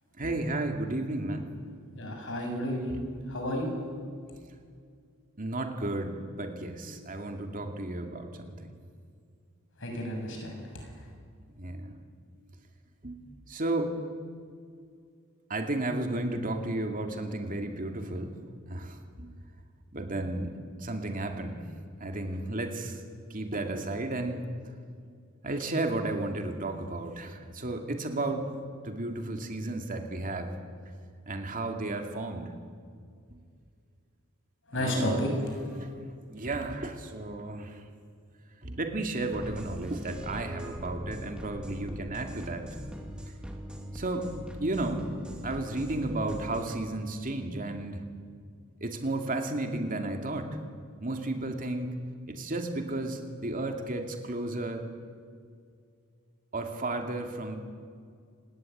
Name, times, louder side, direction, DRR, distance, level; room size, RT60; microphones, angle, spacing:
voice 1, 0.2-1.5 2.9-3.1 5.4-8.7 11.4-12.0 13.0-14.0 15.5-18.3 18.7-19.3 19.9-21.6 22.0-23.0 23.3-24.4 25.4-28.5 28.8-30.5 31.3-32.5 33.3-33.4 34.8-35.2 35.8-35.9 36.3-37.8 38.6-42.7 43.9-44.3 44.6-48.0 48.8-50.6 51.0-51.9 52.3-54.8 56.5-57.6, right 2 dB, 40° right, 4 dB, 2.4 m, -33 dB
voice 2, 2.0-3.7 9.8-11.0 34.7-35.9, equal, 60° left, 2 dB, 7.0 m, -32 dB
sound 1, 39.3-46.8, equal, 5° right, 2.4 m, -42 dB
27.5 x 19.5 x 9.3 m, 2.2 s
head